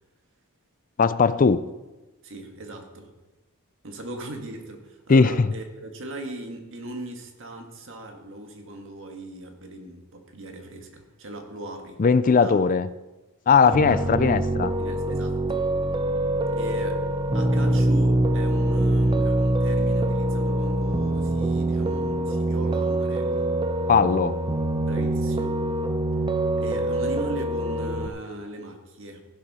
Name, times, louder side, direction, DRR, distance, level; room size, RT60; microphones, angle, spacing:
voice 1, 1.0-1.6 5.1-5.5 12.0-12.9 13.5-14.7 23.9-24.3, left 5 dB, 40° left, 15 dB, 0.4 m, -19 dB
voice 2, 2.2-3.1 3.8-12.0 12.4-12.6 13.6-14.1 14.8-15.7 16.5-17.1 17.3-23.5 24.8-25.6 26.6-29.2, right 2 dB, 60° right, 4 dB, 1.9 m, -38 dB
Piano, 13.7-28.1, right 1 dB, 20° right, 0.6 m, -24 dB
15.0 x 11.5 x 4.3 m, 1.1 s
head